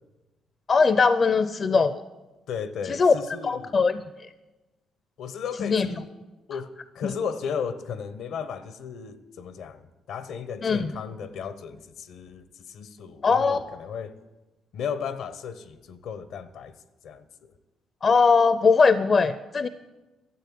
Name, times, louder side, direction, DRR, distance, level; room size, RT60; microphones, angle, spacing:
voice 1, 0.7-2.0 2.9-3.1 3.4-4.0 5.6-5.9 7.0-7.1 10.6-10.9 13.2-13.6 18.0-19.7, left 4 dB, 40° left, 0.5 m, -20 dB
voice 2, 2.5-3.8 5.2-6.1 6.5-14.1 14.7-16.7 17.0-17.5, left 6 dB, 75° left, 0.9 m, -35 dB
13.0 x 8.0 x 8.5 m
cardioid pair, 90°, 0 cm